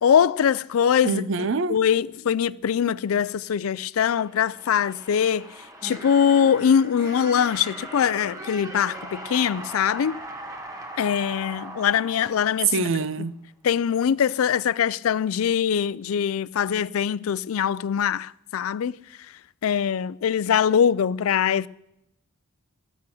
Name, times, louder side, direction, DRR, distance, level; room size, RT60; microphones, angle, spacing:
voice 1, 0.0-1.2 1.7-5.5 5.8-10.2 11.0-12.9 13.6-19.0 19.6-21.7, left 8 dB, 85° left, 0.4 m, -22 dB
voice 2, 1.0-1.8 12.7-13.3, right 3 dB, 65° right, 0.6 m, -25 dB
sound 1, 4.2-13.1, right 1 dB, 15° right, 1.4 m, -39 dB
13.5 x 8.3 x 6.4 m
head